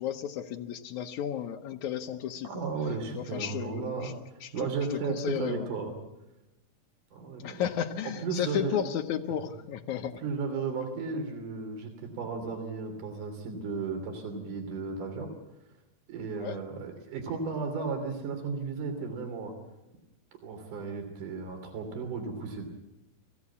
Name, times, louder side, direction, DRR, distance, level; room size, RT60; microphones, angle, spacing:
voice 1, 0.0-2.5 3.2-4.1 4.4-4.7 5.0-5.7 7.4-10.2 16.4-16.6, left 9 dB, 75° left, 7 dB, 1.8 m, -33 dB
voice 2, 2.4-4.1 4.5-5.9 7.1-7.7 8.0-8.8 10.2-15.3 16.1-19.5 20.4-22.7, right 4 dB, 55° right, 4 dB, 4.4 m, -34 dB
24.0 x 16.0 x 8.4 m, 0.99 s
omnidirectional pair, 4.4 m